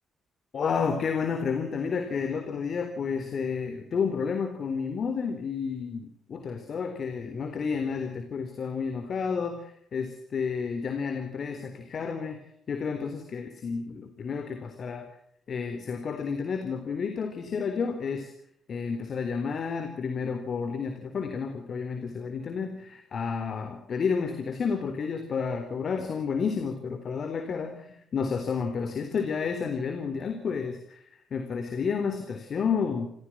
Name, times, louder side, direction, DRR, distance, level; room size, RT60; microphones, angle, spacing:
voice 1, 0.5-15.1 15.5-18.3 18.7-33.1, left 5 dB, 50° left, 7 dB, 3.9 m, -31 dB
27.5 x 16.0 x 6.1 m, 0.73 s
cardioid pair, 90°, 0 cm